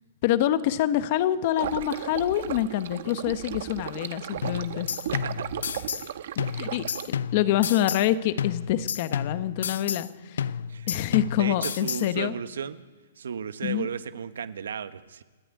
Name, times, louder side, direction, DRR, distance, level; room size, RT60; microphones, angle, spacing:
voice 1, 0.2-4.9 6.5-10.5 10.9-12.3 13.6-13.9, left 12 dB, 35° left, 12 dB, 1.1 m, -26 dB
sound 1, 1.6-7.1, right 10 dB, 50° right, 1.1 m, -35 dB
sound 2, 4.4-6.1 6.4-8.1 8.4-10.1 10.4-12.1, left 7 dB, 70° left, 0.6 m, -32 dB
voice 2, 5.1-5.5 10.7-10.9 11.3-12.8 13.2-15.2, right 7 dB, 75° right, 12 dB, 1.2 m, -34 dB
28.5 x 10.0 x 9.5 m, 1.4 s
hypercardioid pair, 165°, 0 cm